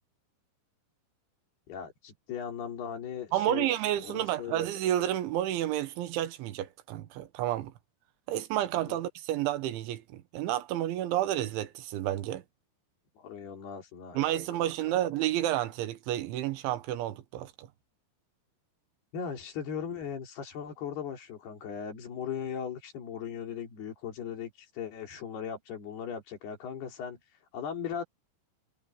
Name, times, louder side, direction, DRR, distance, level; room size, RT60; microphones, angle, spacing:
voice 1, 1.7-4.7 8.9-9.0 13.2-14.7 19.1-28.0, left 7 dB, 60° left, 5.4 m, -38 dB
voice 2, 3.3-7.7 8.3-12.4 14.2-17.7, right 13 dB, 80° right, 3.6 m, -30 dB
omnidirectional pair, 5.4 m